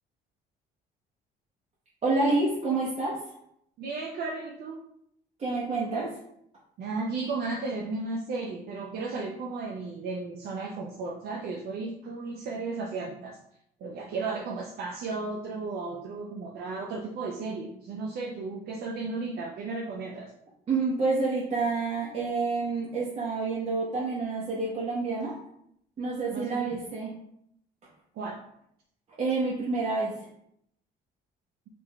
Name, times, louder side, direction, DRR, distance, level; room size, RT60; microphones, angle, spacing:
voice 1, 2.0-3.2 5.4-6.1 20.7-25.3 26.0-27.1 29.2-30.1, right 3 dB, 35° right, -6 dB, 0.9 m, -28 dB
voice 2, 3.8-4.8 6.8-13.4 13.8-20.3 26.3-26.6 28.1-28.4, right 3 dB, 70° right, -1 dB, 0.5 m, -34 dB
3.6 x 2.5 x 3.4 m, 0.73 s
cardioid pair, 110°, 17 cm